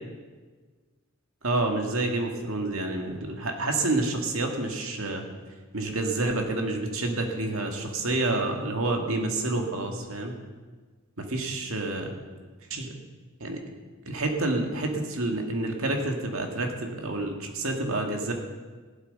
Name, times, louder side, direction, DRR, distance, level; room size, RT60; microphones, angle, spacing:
voice 1, 1.4-5.3 5.7-10.3 11.2-12.1 12.7-12.9 13.4-13.6 14.1-18.3, right 2 dB, 70° right, 3 dB, 2.1 m, -28 dB
16.0 x 12.0 x 5.5 m, 1.4 s
head